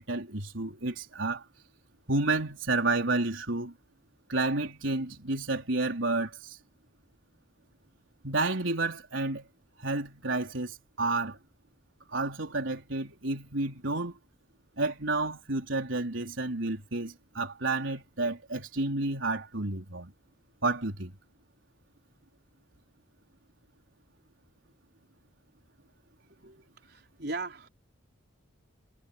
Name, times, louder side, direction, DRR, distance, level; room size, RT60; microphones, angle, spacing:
voice 1, 0.0-1.5 2.1-3.7 4.3-6.6 8.2-9.5 9.8-11.4 12.1-14.2 14.8-20.1 20.6-21.1, right 2 dB, 85° right, 4.0 m, -30 dB
voice 2, 26.4-27.7, right 3 dB, 55° right, 4.7 m, -39 dB
head